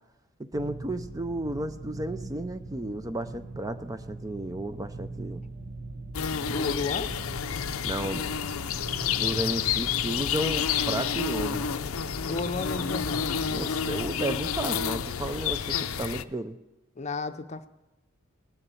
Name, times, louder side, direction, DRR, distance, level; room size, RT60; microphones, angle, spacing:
voice 1, 0.4-5.4 6.4-6.6 7.8-8.3 9.1-11.7 13.5-16.6, right 1 dB, 15° right, 10 dB, 0.5 m, -33 dB
sound 1, 0.5-14.0, right 2 dB, 45° right, 0.9 m, -41 dB
sound 2, 6.1-16.2, left 7 dB, 75° left, 0.6 m, -29 dB
voice 2, 6.5-7.1 12.2-13.3 17.0-17.7, left 3 dB, 35° left, 9 dB, 0.6 m, -32 dB
19.0 x 7.0 x 7.0 m, 1.0 s
head